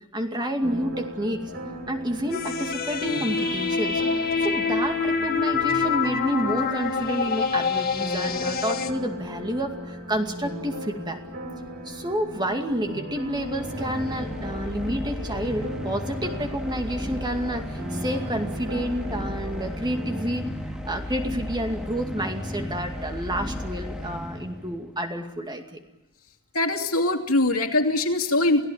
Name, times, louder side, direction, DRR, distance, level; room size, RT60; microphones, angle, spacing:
voice 1, 0.1-1.4 1.9-4.0 4.4-11.2 11.8-20.5 20.9-25.8, equal, 20° right, 4 dB, 2.4 m, -29 dB
sound 1, 0.6-20.2, equal, 60° right, 4.5 m, -38 dB
sound 2, 2.3-8.9, left 5 dB, 45° left, 1.9 m, -26 dB
sound 3, 13.1-24.9, left 1 dB, 5° right, 2.0 m, -34 dB
voice 2, 26.5-28.7, left 2 dB, 90° left, 4 dB, 2.7 m, -22 dB
29.5 x 16.5 x 9.2 m, 0.93 s
head